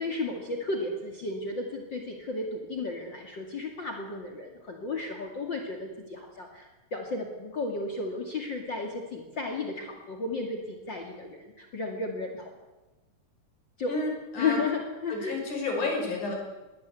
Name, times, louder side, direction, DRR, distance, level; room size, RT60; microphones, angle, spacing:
voice 1, 0.0-12.5 13.8-13.9 14.4-15.4, left 3 dB, 40° left, 2 dB, 2.8 m, -33 dB
voice 2, 13.9-14.6 15.1-16.4, left 3 dB, 80° left, 1 dB, 6.7 m, -31 dB
22.0 x 17.5 x 8.3 m, 1.1 s
omnidirectional pair, 3.4 m